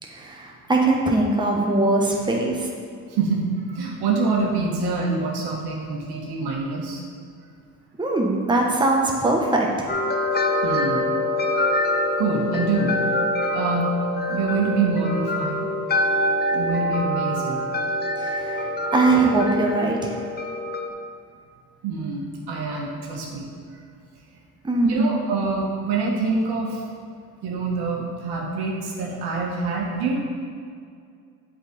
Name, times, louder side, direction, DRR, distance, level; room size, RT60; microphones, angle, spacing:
voice 1, 0.0-2.7 8.0-9.9 18.2-20.2 24.6-25.1, right 2 dB, 10° right, -1 dB, 1.2 m, -21 dB
voice 2, 3.1-7.0 10.6-11.1 12.2-13.0 13.5-13.9 14.3-15.7 16.5-17.7 21.8-23.5 24.8-26.8 27.4-30.2, right 4 dB, 65° right, -1 dB, 1.6 m, -25 dB
sound 1, 9.9-20.9, left 1 dB, 25° left, 0.7 m, -25 dB
7.8 x 4.2 x 5.3 m, 2.2 s
hypercardioid pair, 65°, 41 cm